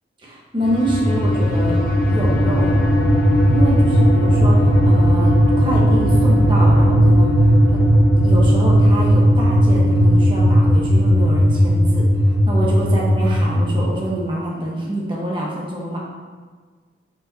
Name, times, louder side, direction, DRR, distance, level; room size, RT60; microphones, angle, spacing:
voice 1, 0.2-2.8 3.4-7.4 7.7-7.8 8.2-16.0, right 1 dB, 30° right, -4 dB, 1.2 m, -26 dB
sound 1, 0.6-13.9, equal, 50° left, 0.7 m, -15 dB
7.2 x 4.8 x 2.8 m, 1.5 s
head